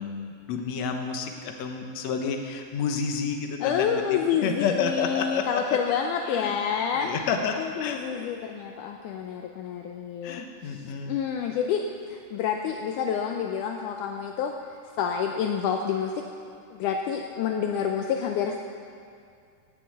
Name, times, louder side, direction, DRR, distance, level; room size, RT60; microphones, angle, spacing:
voice 1, 0.0-3.9 4.4-6.0 6.3-6.6 7.0-8.3 10.2-11.2, left 6 dB, 65° left, 4 dB, 2.0 m, -30 dB
voice 2, 3.6-7.1 7.6-14.5 15.0-16.2 16.7-18.6, left 7 dB, 80° left, 3 dB, 1.9 m, -28 dB
15.5 x 7.0 x 9.1 m, 2.3 s
omnidirectional pair, 4.1 m